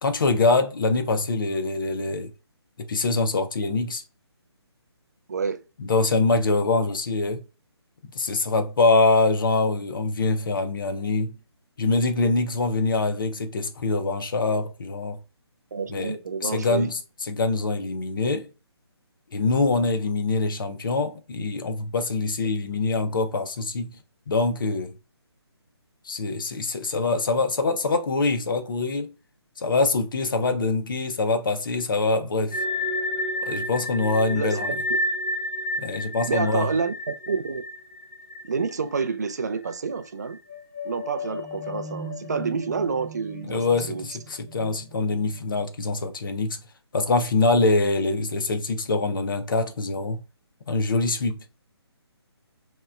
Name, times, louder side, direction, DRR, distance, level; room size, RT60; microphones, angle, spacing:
voice 1, 0.0-2.3 2.9-4.0 5.8-7.4 8.1-11.4 11.8-15.2 15.9-18.5 19.3-24.0 24.3-25.0 26.0-29.1 29.6-32.6 33.4-34.8 35.8-36.7 43.5-46.6 46.9-50.2 50.7-51.4, left 3 dB, 50° left, 0.6 m, -24 dB
voice 2, 5.3-5.6 15.7-16.9 34.3-34.6 36.3-37.6 38.4-40.4 40.8-44.0, right 5 dB, 40° right, 0.3 m, -28 dB
sound 1, 32.5-39.4 39.6-39.8 40.3-45.7, left 1 dB, 15° left, 0.7 m, -32 dB
2.9 x 2.1 x 2.3 m
hypercardioid pair, 170°, 14 cm